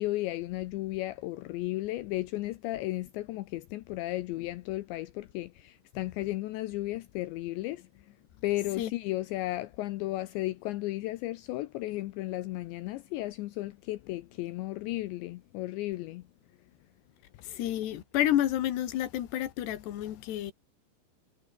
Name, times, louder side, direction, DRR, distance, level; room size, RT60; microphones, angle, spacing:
voice 1, 0.0-7.9 8.4-16.2, left 17 dB, 85° left, 2.7 m, -34 dB
voice 2, 17.4-20.5, left 12 dB, 65° left, 3.5 m, -30 dB
omnidirectional pair, 5.9 m